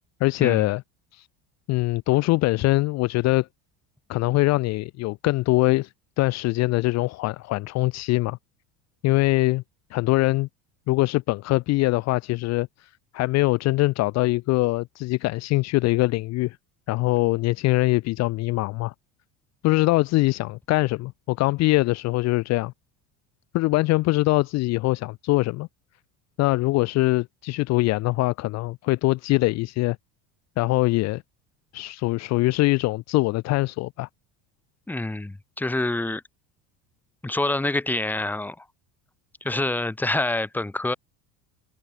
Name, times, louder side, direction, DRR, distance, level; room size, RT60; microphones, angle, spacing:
voice 1, 0.2-0.8 1.1-1.3 1.7-3.5 4.1-5.9 6.2-8.4 9.0-9.6 9.9-10.5 10.9-12.7 13.1-16.6 16.9-18.9 19.6-22.7 23.5-25.7 26.4-30.0 30.6-31.2 31.7-34.1, left 20 dB, 40° left, 0.8 m, -23 dB
voice 2, 34.9-36.2 37.2-38.7 39.4-41.0, left 2 dB, 5° left, 1.8 m, -26 dB
cardioid pair, 175°, 40 cm